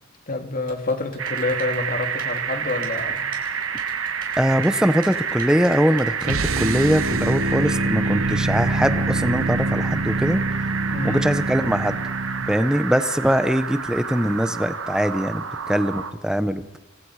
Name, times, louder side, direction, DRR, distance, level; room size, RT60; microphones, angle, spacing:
voice 1, 0.3-3.3 10.9-11.2, left 2 dB, 45° left, 5 dB, 2.8 m, -27 dB
Typing, 0.7-6.7, right 5 dB, 45° right, 5.7 m, -46 dB
sound 1, 1.2-16.1, right 6 dB, 70° right, 1.8 m, -29 dB
voice 2, 4.4-10.4 11.0-12.0 12.4-16.8, equal, 5° right, 11 dB, 1.1 m, -22 dB
sound 2, 6.2-12.7, right 2 dB, 85° right, 1.3 m, -25 dB
29.0 x 24.5 x 5.0 m, 1.1 s
head